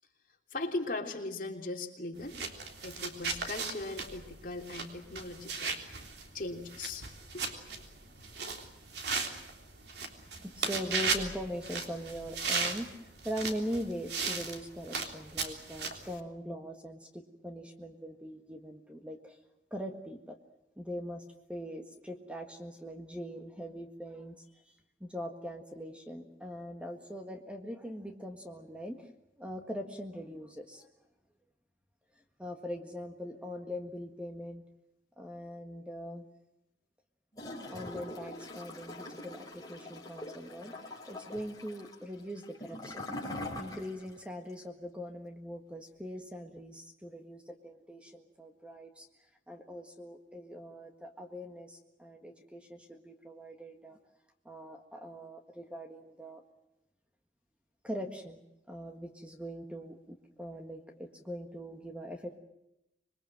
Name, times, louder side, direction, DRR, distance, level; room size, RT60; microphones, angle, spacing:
voice 1, 0.5-2.4 2.8-5.8 6.3-7.1 7.3-7.5, left 2 dB, 50° left, 2 dB, 3.2 m, -38 dB
sound 1, 2.2-16.1, right 4 dB, 70° right, 3.4 m, -37 dB
voice 2, 10.4-19.4 19.7-20.4 20.8-21.2 21.5-29.1 29.4-30.9 32.4-34.6 35.2-36.3 37.7-40.8 41.1-43.1 43.6-54.0 54.4-56.4 57.8-62.4, equal, 5° right, 5 dB, 1.7 m, -42 dB
Gurgling / Toilet flush, 37.3-44.2 44.5-44.6, left 1 dB, 20° left, 4.9 m, -43 dB
26.5 x 22.0 x 7.7 m, 0.88 s
head